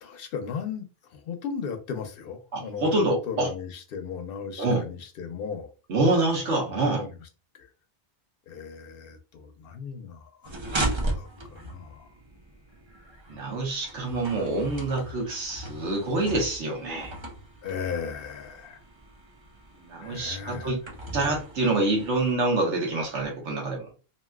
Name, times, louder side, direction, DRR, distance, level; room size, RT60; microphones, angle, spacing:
voice 1, 0.0-3.0 3.3-5.7 6.7-7.1 7.5-7.7 8.5-10.5 11.1-12.1 13.3-13.4 17.6-18.8 20.0-20.8, left 6 dB, 60° left, 7 dB, 0.7 m, -36 dB
voice 2, 2.5-3.5 4.6-4.8 5.9-7.1 13.3-17.1 19.8-20.8 21.1-23.9, right 2 dB, 80° right, -1 dB, 1.4 m, -26 dB
sound 1, 10.4-22.3, right 1 dB, 35° right, 0.5 m, -37 dB
2.9 x 2.7 x 2.2 m, 0.34 s
omnidirectional pair, 1.2 m